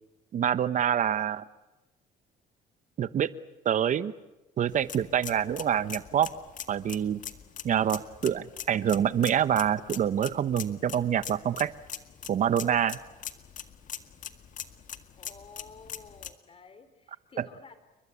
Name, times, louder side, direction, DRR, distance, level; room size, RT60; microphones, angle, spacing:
voice 1, 0.3-1.4 3.0-3.3 3.6-4.1 4.6-6.3 6.7-7.2 7.6-11.7 12.3-13.0 17.4-17.5, right 9 dB, 50° right, 15 dB, 1.1 m, -26 dB
sound 1, 4.7-16.3, left 9 dB, 50° left, 1.9 m, -43 dB
voice 2, 15.1-17.7, left 4 dB, 35° left, 11 dB, 4.0 m, -51 dB
30.0 x 23.0 x 8.5 m, 1.0 s
cardioid pair, 110°, 17 cm